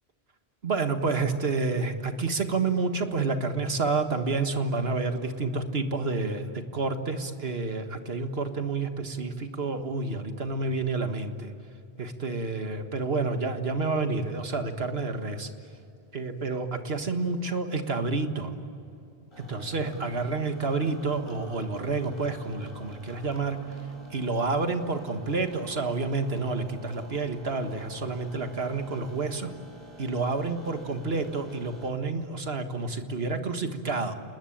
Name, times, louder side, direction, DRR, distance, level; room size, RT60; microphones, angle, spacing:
voice 1, 0.6-11.5 12.0-15.5 16.1-18.5 19.4-23.8 24.1-29.5 30.0-34.1, right 3 dB, 70° right, 7 dB, 1.9 m, -29 dB
sound 1, 19.3-31.9, left 1 dB, 25° left, 4.4 m, -49 dB
29.5 x 20.5 x 8.8 m, 2.6 s
omnidirectional pair, 1.1 m